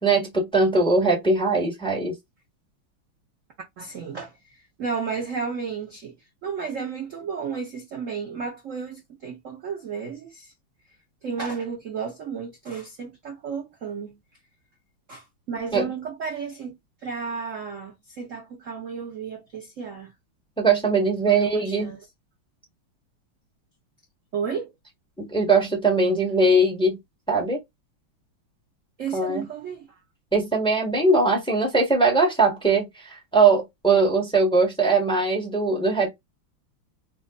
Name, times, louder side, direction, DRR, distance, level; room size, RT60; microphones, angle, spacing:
voice 1, 0.0-2.1 15.7-15.9 20.6-21.9 25.2-27.0 27.3-27.6 29.1-29.5 30.3-36.1, right 3 dB, 5° left, 1.2 m, -21 dB
voice 2, 3.8-6.1 6.4-10.5 11.2-14.2 15.1-20.1 21.3-22.0 24.3-24.7 29.0-30.0, right 6 dB, 50° right, 0.9 m, -33 dB
4.3 x 2.5 x 2.3 m
omnidirectional pair, 2.4 m